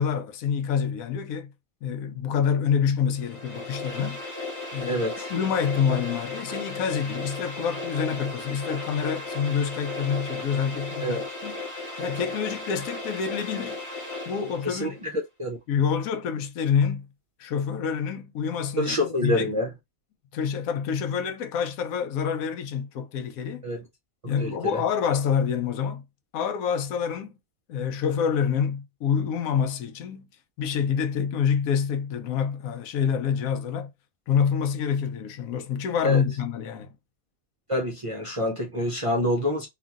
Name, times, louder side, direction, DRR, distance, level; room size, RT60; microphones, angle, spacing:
voice 1, 0.0-1.5 1.8-4.2 4.7-5.0 5.3-11.6 12.0-13.7 14.3-15.0 15.7-17.1 17.4-19.5 20.3-23.6 24.2-26.0 26.3-27.4 27.7-30.3 30.6-33.9 34.3-36.9, left 7 dB, 85° left, 1.0 m, -27 dB
sound 1, 3.1-14.8, left 2 dB, 25° left, 0.9 m, -35 dB
voice 2, 4.9-5.3 11.0-11.2 14.6-15.1 15.4-15.6 18.8-19.7 23.6-23.8 24.2-24.5 36.0-36.2 37.7-39.7, left 1 dB, 45° right, 0.4 m, -26 dB
3.0 x 2.5 x 2.4 m
omnidirectional pair, 1.4 m